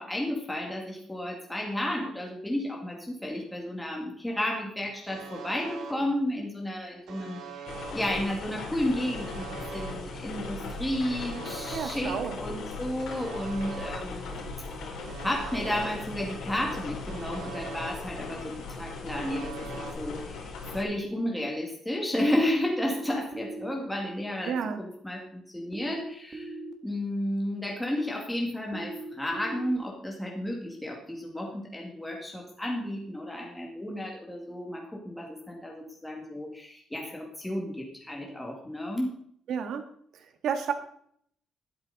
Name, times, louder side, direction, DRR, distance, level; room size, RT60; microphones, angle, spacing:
voice 1, 0.0-14.5 15.2-26.5 26.8-39.1, left 1 dB, 5° left, -1 dB, 2.2 m, -32 dB
Alarm, 5.1-5.9 7.1-7.9 9.1-9.9 11.1-11.9 13.1-13.9 15.1-15.9 17.1-17.9 19.1-19.9, right 6 dB, 90° right, 2.9 m, -42 dB
sound 1, 7.7-20.8, left 3 dB, 80° left, 3.8 m, -38 dB
voice 2, 11.7-12.4 24.5-24.8 39.5-39.9 40.4-40.7, right 7 dB, 65° right, 7 dB, 1.8 m, -30 dB
sound 2, 22.7-23.7 25.7-26.7 28.7-29.7, right 2 dB, 25° right, 1.8 m, -39 dB
12.5 x 12.0 x 4.1 m, 0.65 s
cardioid pair, 170°, 0 cm